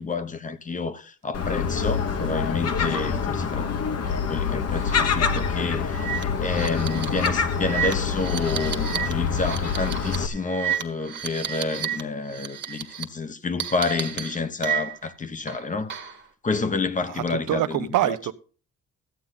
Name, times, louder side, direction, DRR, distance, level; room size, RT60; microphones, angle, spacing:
voice 1, 0.0-3.7 4.1-15.9 16.4-18.2, left 4 dB, 25° left, 0.9 m, -29 dB
Gull seagull, 1.3-10.3, left 6 dB, 55° left, 1.3 m, -26 dB
sound 1, 4.7-5.0 5.3-5.4 5.9-12.0 12.3-13.0 13.6-15.1 15.5-16.2, right 9 dB, 35° right, 1.4 m, -32 dB
voice 2, 17.1-18.3, right 14 dB, 85° right, 0.9 m, -25 dB
13.5 x 8.7 x 4.0 m
cardioid pair, 140°, 30 cm